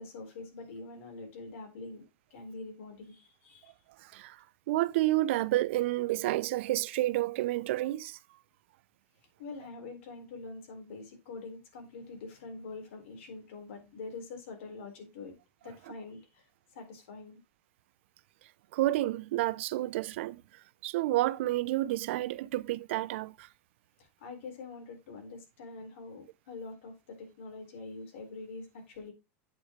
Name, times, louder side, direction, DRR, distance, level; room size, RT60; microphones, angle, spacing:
voice 1, 0.0-2.0 2.3-3.8 9.4-15.3 15.6-16.4 16.7-17.4 24.0-29.1, left 3 dB, 80° left, 4.2 m, -45 dB
voice 2, 4.0-4.4 4.7-8.2 18.7-20.4 20.8-23.5, right 16 dB, 75° right, 0.5 m, -30 dB
8.3 x 7.3 x 3.1 m
supercardioid pair, 150°, 7 cm